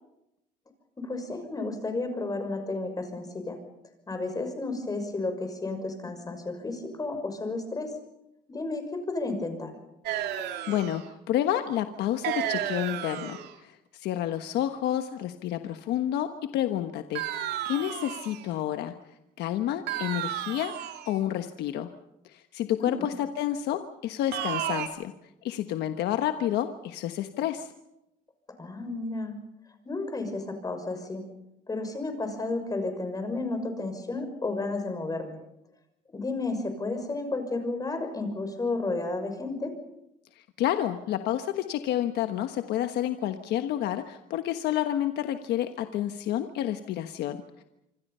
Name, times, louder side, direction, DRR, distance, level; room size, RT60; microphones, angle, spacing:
voice 1, 1.0-3.6 4.1-7.9 8.5-9.7 22.8-23.1 28.6-29.4 29.8-31.2 31.7-35.4 36.1-39.7, left 2 dB, 20° left, 7 dB, 6.0 m, -32 dB
sound 1, 10.1-11.1 12.2-13.5 17.2-18.5 19.9-21.2 24.3-24.9, right 10 dB, 80° right, 2.5 m, -32 dB
voice 2, 10.4-17.2 17.6-18.9 19.4-21.9 22.2-25.1 25.4-27.7 40.4-47.6, left 11 dB, 80° left, 7 dB, 1.3 m, -30 dB
26.5 x 25.5 x 5.6 m, 0.87 s
cardioid pair, 110°, 17 cm